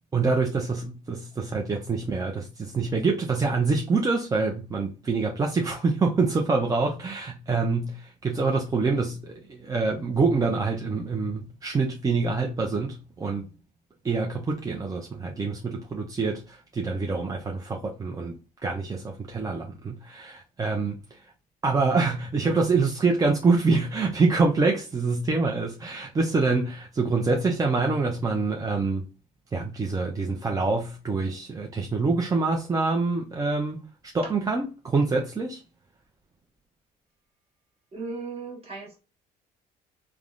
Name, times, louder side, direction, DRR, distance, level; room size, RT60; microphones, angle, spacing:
voice 1, 0.1-13.5 14.0-18.4 18.6-21.2 21.6-29.1 29.5-33.8 34.1-35.6, right 4 dB, 20° right, 0.4 m, -26 dB
voice 2, 37.9-39.0, right 4 dB, 35° right, 1.3 m, -36 dB
3.4 x 2.0 x 2.4 m
cardioid pair, 110°, 17 cm